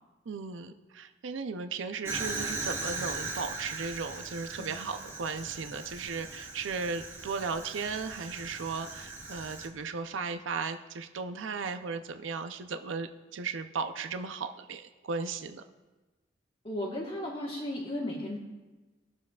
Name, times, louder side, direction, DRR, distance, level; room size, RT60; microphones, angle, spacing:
voice 1, 0.3-15.6, right 5 dB, 85° right, 9 dB, 0.5 m, -36 dB
Fire, 2.0-9.7, right 3 dB, 15° right, 1.3 m, -39 dB
voice 2, 4.6-4.9 16.6-18.4, left 1 dB, 30° left, -6 dB, 1.3 m, -35 dB
21.0 x 7.2 x 2.3 m, 1.2 s
head